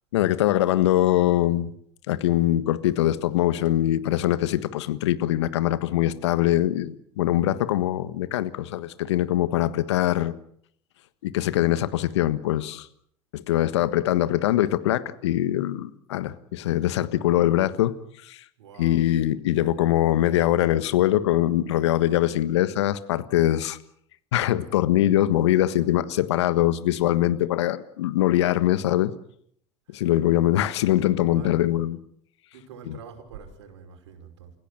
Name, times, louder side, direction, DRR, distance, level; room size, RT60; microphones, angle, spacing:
voice 1, 0.1-1.7 2.1-10.3 11.2-12.9 13.3-17.9 18.2-18.4 18.8-23.8 24.3-29.1 29.9-32.0 32.9-33.0, left 13 dB, 75° left, 14 dB, 1.4 m, -23 dB
voice 2, 18.6-19.0 25.2-25.3 29.9-30.0 31.3-31.7 32.5-34.5, right 7 dB, 80° right, 4 dB, 5.6 m, -45 dB
29.5 x 16.5 x 7.7 m, 0.67 s
hypercardioid pair, 75°, 15 cm